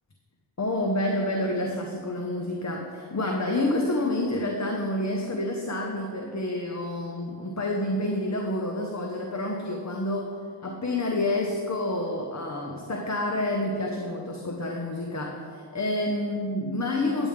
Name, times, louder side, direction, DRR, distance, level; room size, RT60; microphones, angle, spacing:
voice 1, 0.6-10.3 10.6-17.3, left 1 dB, 40° left, 1 dB, 0.9 m, -28 dB
9.6 x 9.0 x 3.7 m, 2.3 s
wide cardioid pair, 45°, 43 cm